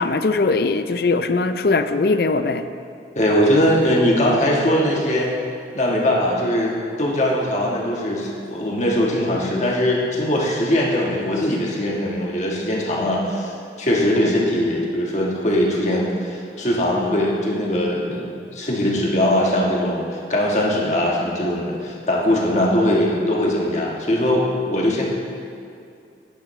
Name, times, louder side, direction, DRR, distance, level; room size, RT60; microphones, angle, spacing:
voice 1, 0.0-2.6 14.2-14.3, left 3 dB, 60° left, 10 dB, 0.4 m, -20 dB
voice 2, 3.1-5.3 5.7-13.5 13.8-25.0, left 1 dB, 40° left, -3 dB, 1.5 m, -21 dB
11.0 x 9.5 x 3.2 m, 2.5 s
head